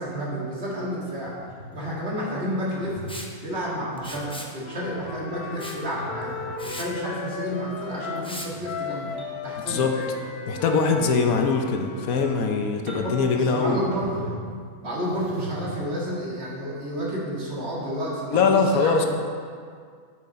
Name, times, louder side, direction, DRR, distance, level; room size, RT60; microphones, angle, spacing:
voice 1, 0.0-1.4 1.7-3.0 3.4-6.4 6.6-9.1 9.4-10.1 13.0-14.3 14.8-19.1, equal, 45° right, -6 dB, 2.2 m, -30 dB
sound 1, 1.2-1.9 2.7-3.1 4.0-4.2 4.8-6.9 8.0-8.6 9.2-9.6 9.8-10.3 10.7-10.8 11.3-11.6 12.1-12.5 12.9-13.3 13.9-14.5 15.0-15.9 16.8-17.0, right 1 dB, 65° right, 2.4 m, -41 dB
Liquid, 3.1-3.3 4.0-4.5 5.6-5.8 6.2-6.3 6.6-6.9 8.2-8.5, left 1 dB, 5° left, 0.4 m, -37 dB
Wind instrument woodwind instrument, 4.5-8.3 8.6-12.6, left 5 dB, 90° left, 1.3 m, -36 dB
voice 2, 10.5-13.8 18.3-19.1, left 5 dB, 70° left, 3 dB, 1.2 m, -22 dB
10.5 x 6.6 x 4.2 m, 2.1 s
omnidirectional pair, 1.6 m